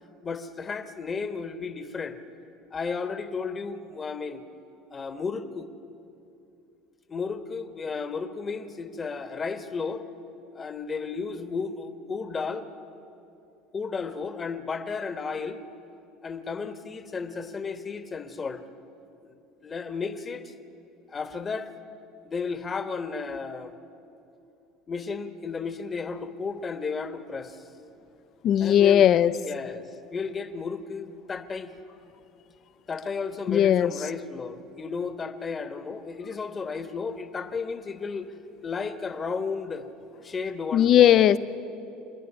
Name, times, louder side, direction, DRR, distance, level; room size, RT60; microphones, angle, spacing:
voice 1, 0.2-2.2 2.7-4.4 4.9-5.7 7.1-10.0 10.5-12.7 13.7-15.6 16.2-18.6 19.2-19.3 19.6-20.5 21.1-21.7 22.2-23.7 24.9-27.7 28.6-29.0 29.4-31.7 32.9-38.3 38.6-39.9 40.2-41.2, left 5 dB, 25° left, 9 dB, 1.2 m, -33 dB
voice 2, 28.4-29.4 33.5-33.9 40.7-41.4, left 10 dB, 50° left, 15 dB, 0.6 m, -18 dB
26.5 x 10.5 x 9.8 m, 2.8 s
supercardioid pair, 115°, 0 cm